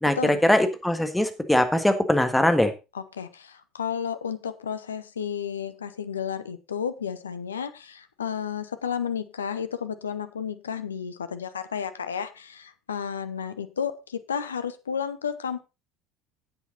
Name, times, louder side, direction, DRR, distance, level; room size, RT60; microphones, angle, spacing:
voice 1, 0.0-2.7, left 1 dB, 5° left, 8 dB, 1.6 m, -21 dB
voice 2, 2.9-15.6, left 7 dB, 80° left, 11 dB, 0.7 m, -32 dB
10.0 x 8.2 x 4.0 m, 0.28 s
figure-of-eight pair, 65°, 0 cm